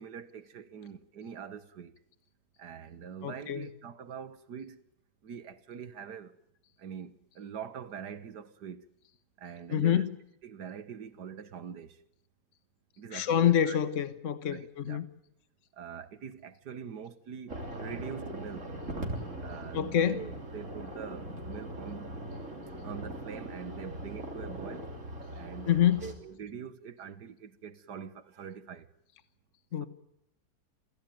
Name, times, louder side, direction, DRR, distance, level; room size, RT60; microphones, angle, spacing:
voice 1, 0.0-1.9 2.6-4.8 5.2-6.3 6.8-8.9 9.4-10.1 10.4-12.0 13.0-13.8 14.5-15.0 15.7-18.7 19.4-22.3 22.8-24.9 25.3-28.9 29.8-29.9, right 7 dB, 90° right, 1.9 m, -44 dB
voice 2, 3.2-3.7 9.7-10.1 13.1-15.1 19.2-19.3 19.7-20.2 25.7-26.1 29.7-29.9, left 10 dB, 50° left, 1.4 m, -27 dB
sound 1, 17.5-26.1, right 1 dB, 50° right, 3.7 m, -40 dB
27.5 x 17.0 x 9.2 m
omnidirectional pair, 1.7 m